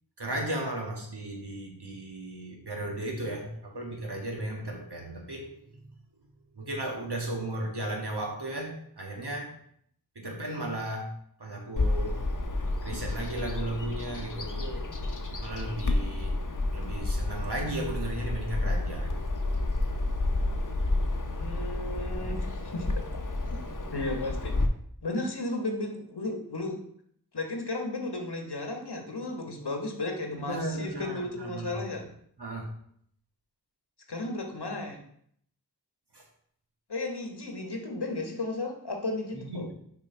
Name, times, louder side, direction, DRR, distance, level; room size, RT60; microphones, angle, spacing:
voice 1, 0.2-5.9 6.5-9.5 10.1-11.1 11.4-12.2 12.8-14.9 15.4-16.4 16.7-19.3 30.4-32.0 32.4-32.7 36.1-36.2 39.3-39.7, right 1 dB, 85° right, 0 dB, 1.7 m, -35 dB
Bird vocalization bird call bird song, 11.8-24.7, left 2 dB, 50° left, 0.8 m, -30 dB
voice 2, 21.2-22.4 22.7-23.0 23.9-24.6 25.0-26.8 27.3-32.0 34.1-35.0 36.9-39.7, left 2 dB, 85° left, 3 dB, 1.3 m, -34 dB
6.3 x 4.8 x 4.5 m, 0.66 s
wide cardioid pair, 40°, 39 cm